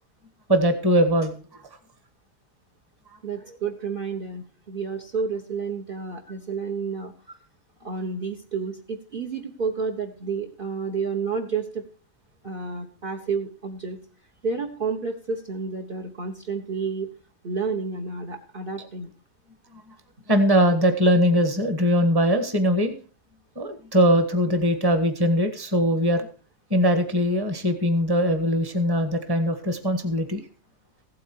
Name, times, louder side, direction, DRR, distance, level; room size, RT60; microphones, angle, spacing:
voice 1, 0.5-1.3 20.3-22.9 23.5-26.3 26.7-30.4, equal, 15° right, 8 dB, 1.5 m, -21 dB
voice 2, 3.2-7.1 7.8-11.8 12.4-14.0 14.4-17.1 17.4-19.1, right 5 dB, 40° right, 6 dB, 1.3 m, -30 dB
15.5 x 8.6 x 4.6 m, 0.38 s
omnidirectional pair, 1.5 m